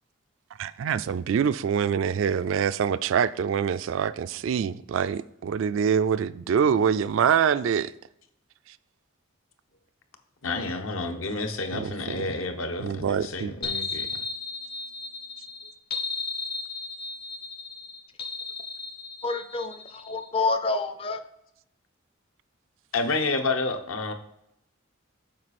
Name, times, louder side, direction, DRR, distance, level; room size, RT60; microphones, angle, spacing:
voice 1, 0.6-7.9 11.7-12.3 12.8-13.5, right 7 dB, 65° right, 0.3 m, -25 dB
voice 2, 10.4-14.1 22.9-24.1, left 3 dB, 75° left, 1.0 m, -29 dB
sound 1, 13.6-20.3, left 4 dB, 50° left, 1.0 m, -35 dB
voice 3, 19.2-21.2, left 3 dB, 25° left, 0.4 m, -28 dB
7.5 x 4.9 x 4.2 m
head